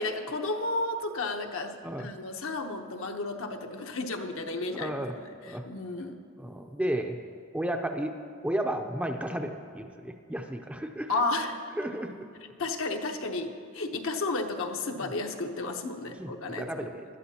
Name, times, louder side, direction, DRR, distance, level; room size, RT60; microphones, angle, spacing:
voice 1, 0.0-5.0 5.7-6.2 11.1-11.6 12.6-16.7, left 2 dB, 70° left, 4 dB, 0.9 m, -32 dB
voice 2, 4.8-5.2 5.4-5.7 6.4-7.2 7.5-8.1 8.4-11.1 11.8-12.3 14.9-15.1 16.1-17.1, right 1 dB, 5° right, 4 dB, 0.5 m, -33 dB
19.5 x 12.0 x 2.8 m, 2.3 s
head